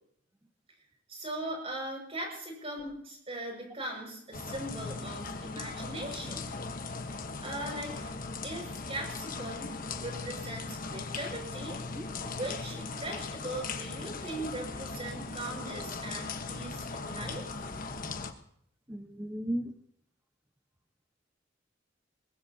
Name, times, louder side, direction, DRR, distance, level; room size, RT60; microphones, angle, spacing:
voice 1, 1.1-6.5 7.4-8.2 8.4-11.8 12.2-17.5, right 1 dB, 30° right, 2 dB, 6.0 m, -40 dB
sound 1, 4.3-18.3, left 4 dB, 50° left, 1.2 m, -39 dB
voice 2, 18.9-19.7, right 1 dB, 10° right, 3 dB, 1.1 m, -36 dB
23.5 x 20.5 x 2.8 m, 0.69 s
head